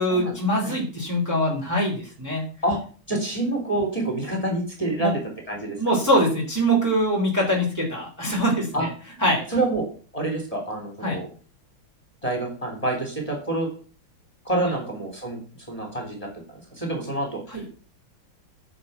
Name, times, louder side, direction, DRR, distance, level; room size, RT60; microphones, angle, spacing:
voice 1, 0.0-2.5 5.0-5.2 5.8-8.9 9.2-9.5 11.0-11.2 17.5-17.7, equal, 10° right, -2 dB, 3.4 m, -23 dB
voice 2, 3.1-5.2 5.5-5.8 8.7-8.9 9.5-9.9 10.1-11.3 12.2-13.7 14.5-16.3 16.7-17.4, right 2 dB, 15° left, 0 dB, 3.5 m, -27 dB
10.0 x 6.2 x 8.1 m, 0.40 s
omnidirectional pair, 2.3 m